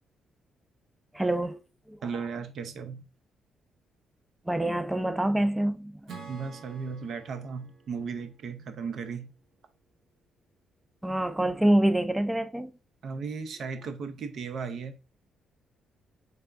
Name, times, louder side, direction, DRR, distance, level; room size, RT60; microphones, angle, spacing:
voice 1, 1.1-1.6 1.9-2.0 4.5-6.1 11.0-12.7, right 1 dB, 10° right, 0.4 m, -26 dB
voice 2, 2.0-3.1 6.3-9.3 13.0-15.0, right 5 dB, 60° right, 0.6 m, -36 dB
Acoustic guitar / Strum, 6.1-9.5, right 5 dB, 80° right, 1.0 m, -49 dB
3.4 x 3.4 x 2.4 m
cardioid pair, 90°, 0 cm